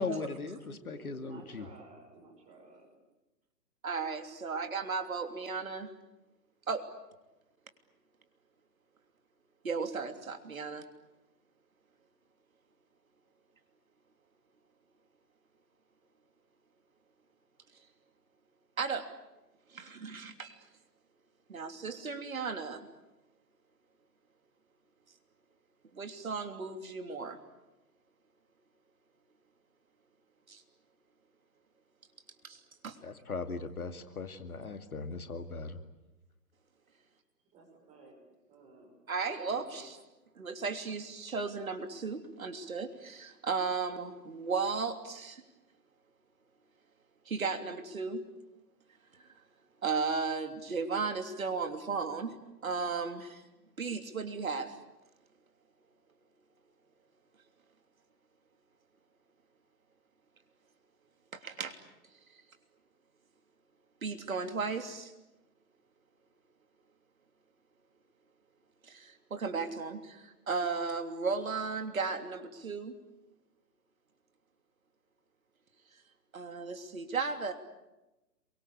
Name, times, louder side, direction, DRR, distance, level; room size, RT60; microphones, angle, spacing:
voice 1, 0.0-1.7 33.0-35.8, left 4 dB, 60° left, 8 dB, 2.4 m, -38 dB
voice 2, 0.7-2.8 37.5-38.2 38.5-38.9 39.5-39.9, right 3 dB, 15° right, 0 dB, 6.3 m, -54 dB
voice 3, 3.8-5.9 6.7-6.9 9.6-10.8 18.8-19.1 19.7-20.6 21.5-22.9 25.9-27.4 30.5-30.6 32.4-33.0 39.1-40.0 40.4-45.4 47.2-48.3 49.8-52.4 52.6-53.4 53.8-54.8 61.4-61.8 64.0-65.1 68.8-73.0 76.3-77.5, right 4 dB, 55° right, 6 dB, 3.2 m, -35 dB
27.5 x 24.0 x 8.5 m, 1.0 s
figure-of-eight pair, 140°, 50 cm